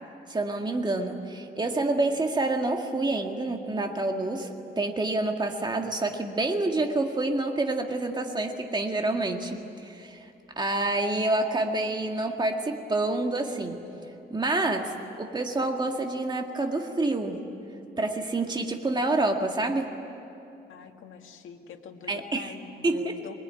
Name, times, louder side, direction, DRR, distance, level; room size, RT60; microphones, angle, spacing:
voice 1, 0.3-10.3 10.6-13.8 14.3-17.4 18.0-20.0 22.1-22.5 22.8-23.2, right 2 dB, 20° right, 3 dB, 2.0 m, -28 dB
voice 2, 20.7-23.3, left 7 dB, 85° left, 5 dB, 1.8 m, -45 dB
24.5 x 21.5 x 9.8 m, 2.9 s
cardioid pair, 125°, 20 cm